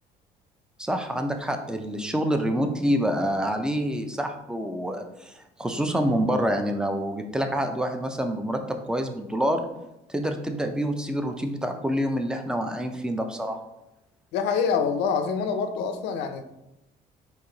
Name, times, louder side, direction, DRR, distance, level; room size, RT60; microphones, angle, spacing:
voice 1, 0.8-9.6 10.1-13.6, equal, 5° right, 5 dB, 0.5 m, -27 dB
voice 2, 14.3-16.4, left 6 dB, 90° left, 8 dB, 0.5 m, -26 dB
4.2 x 2.8 x 3.8 m, 0.90 s
cardioid pair, 110°, 17 cm